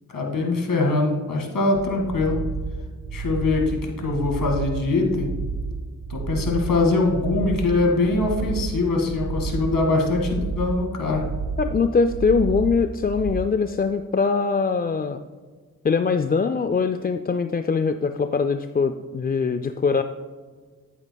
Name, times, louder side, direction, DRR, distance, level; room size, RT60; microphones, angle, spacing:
voice 1, 0.1-2.4 3.1-5.3 6.1-11.2, left 3 dB, 70° left, 1 dB, 2.0 m, -23 dB
sound 1, 1.7-13.4, right 4 dB, 60° right, 0.9 m, -31 dB
voice 2, 11.6-15.2 15.8-20.0, left 5 dB, 30° left, 9 dB, 0.4 m, -22 dB
11.5 x 8.8 x 2.3 m, 1.5 s
cardioid pair, 65°, 34 cm